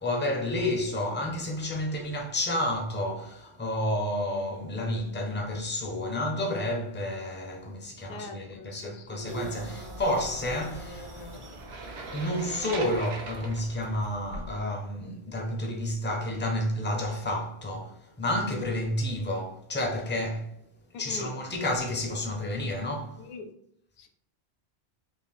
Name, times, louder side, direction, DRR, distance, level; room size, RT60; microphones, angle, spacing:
voice 1, 0.0-11.4 12.1-20.5 21.0-23.3, left 1 dB, 15° left, 0.4 m, -30 dB
voice 2, 8.0-9.3 20.9-21.3 23.2-23.5 24.0-24.1, left 3 dB, 65° left, 0.7 m, -42 dB
sound 1, 9.3-14.3, equal, 45° right, 0.4 m, -44 dB
sound 2, 11.6-14.6, right 3 dB, 80° right, 0.9 m, -40 dB
3.7 x 2.3 x 3.4 m
omnidirectional pair, 1.1 m